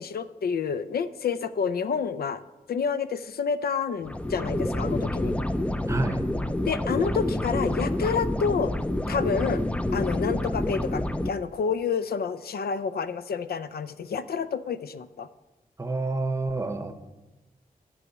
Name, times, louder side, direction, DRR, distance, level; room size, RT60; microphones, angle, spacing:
voice 1, 0.0-2.4 2.7-5.4 6.7-8.7 9.1-9.6 9.9-15.3, left 6 dB, 90° left, 13 dB, 0.5 m, -29 dB
sound 1, 4.0-11.3, left 1 dB, 10° left, 0.3 m, -28 dB
voice 2, 5.9-6.3 7.9-8.0 15.8-16.9, right 2 dB, 20° right, 8 dB, 0.7 m, -29 dB
10.0 x 4.9 x 8.0 m, 1.1 s
wide cardioid pair, 175°, 15 cm